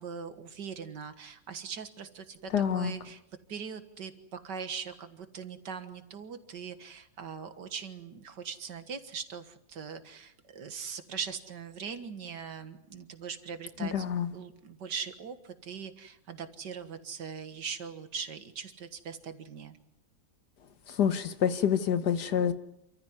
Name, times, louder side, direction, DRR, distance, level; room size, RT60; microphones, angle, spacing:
voice 1, 0.0-3.2 3.5-14.1 14.3-19.8, right 6 dB, 70° right, 9 dB, 2.1 m, -41 dB
voice 2, 2.5-2.9 13.8-14.3 20.9-22.5, left 8 dB, 65° left, 10 dB, 1.7 m, -27 dB
27.5 x 14.5 x 9.6 m, 0.82 s
omnidirectional pair, 2.0 m